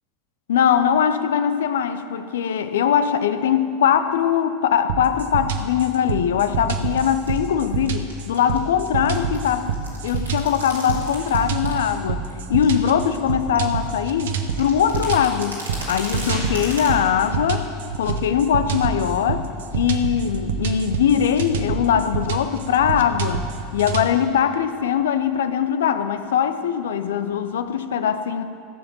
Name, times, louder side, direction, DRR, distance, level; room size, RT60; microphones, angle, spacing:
voice 1, 0.5-15.6 15.9-17.7 18.0-23.4 23.7-28.4, left 8 dB, 70° left, 10 dB, 0.7 m, -21 dB
sound 1, 4.9-24.1, right 6 dB, 65° right, 0.9 m, -27 dB
sound 2, 6.6-7.4 7.8-8.6 8.8-11.9 12.2-12.8 13.3-13.4 13.5-16.9, right 2 dB, 85° right, 3.3 m, -36 dB
15.5 x 7.2 x 7.4 m, 2.5 s
figure-of-eight pair, 80°, 0 cm